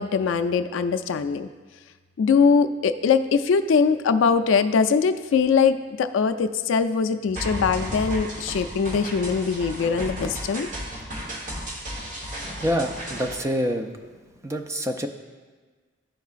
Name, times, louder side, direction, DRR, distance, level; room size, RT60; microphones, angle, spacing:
voice 1, 0.0-1.5 2.2-10.7, left 5 dB, 80° left, 9 dB, 0.3 m, -22 dB
sound 1, 7.4-13.4, equal, 40° right, 1.2 m, -34 dB
voice 2, 12.6-13.9 14.4-15.1, equal, 15° right, 6 dB, 0.3 m, -26 dB
11.5 x 4.6 x 2.4 m, 1.4 s
head